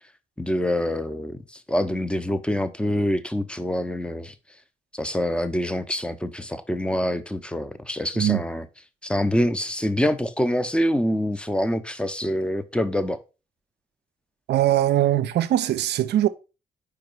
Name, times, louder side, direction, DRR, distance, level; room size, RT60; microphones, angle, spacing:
voice 1, 0.4-4.3 4.9-8.6 9.0-13.2, left 1 dB, 5° left, 0.8 m, -25 dB
voice 2, 8.1-8.5 14.5-16.3, right 12 dB, 70° right, 0.5 m, -21 dB
5.0 x 4.6 x 4.5 m
hypercardioid pair, 40°, 18 cm